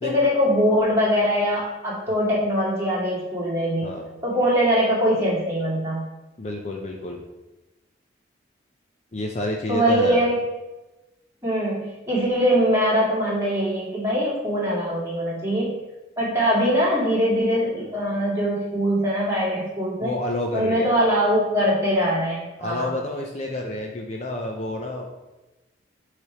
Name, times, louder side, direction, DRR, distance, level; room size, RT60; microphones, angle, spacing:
voice 1, 0.0-3.9 4.2-6.0 9.7-10.4 11.4-15.7 16.2-20.1 20.5-23.0, equal, 15° right, -7 dB, 2.1 m, -22 dB
voice 2, 6.4-7.2 9.1-10.2 20.0-20.9 22.6-25.1, left 1 dB, 35° left, 1 dB, 0.5 m, -29 dB
7.0 x 3.4 x 4.8 m, 1.0 s
head